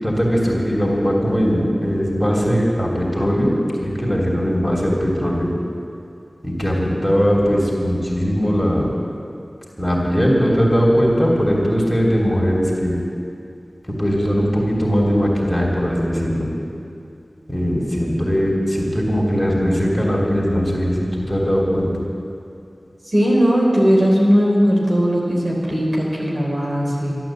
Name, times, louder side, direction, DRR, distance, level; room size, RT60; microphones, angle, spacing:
voice 1, 0.0-3.5 3.8-5.5 6.4-8.9 9.8-13.0 13.9-16.5 17.5-21.9, equal, 10° left, -3 dB, 3.2 m, -19 dB
voice 2, 23.1-27.1, equal, 60° right, -3 dB, 3.9 m, -18 dB
12.5 x 12.0 x 7.7 m, 2.6 s
wide cardioid pair, 45°, 0 cm